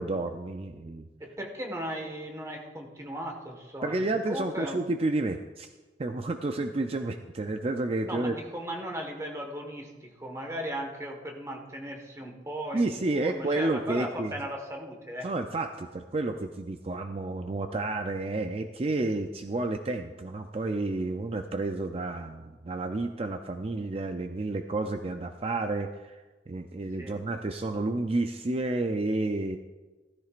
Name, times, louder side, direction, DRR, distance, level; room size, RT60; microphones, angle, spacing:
voice 1, 0.0-1.1 3.8-5.7 6.0-8.4 12.7-14.4 15.2-29.6, right 2 dB, 35° right, 6 dB, 0.4 m, -30 dB
voice 2, 1.2-4.8 8.0-15.3 27.0-27.2, equal, 15° right, 2 dB, 1.4 m, -37 dB
15.5 x 13.5 x 2.5 m, 1.2 s
head